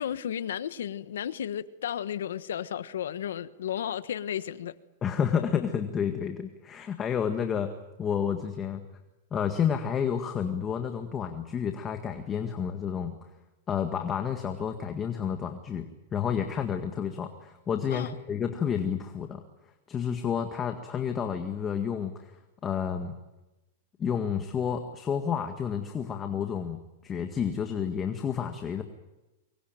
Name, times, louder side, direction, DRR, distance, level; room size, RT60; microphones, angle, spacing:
voice 1, 0.0-4.7 17.9-18.1, left 9 dB, 85° left, 1.3 m, -33 dB
voice 2, 5.0-7.7 8.0-8.8 9.3-13.1 13.7-15.8 16.1-19.4 19.9-23.2 24.0-28.8, left 7 dB, 20° left, 1.8 m, -30 dB
24.0 x 21.5 x 9.2 m
supercardioid pair, 155°, 0 cm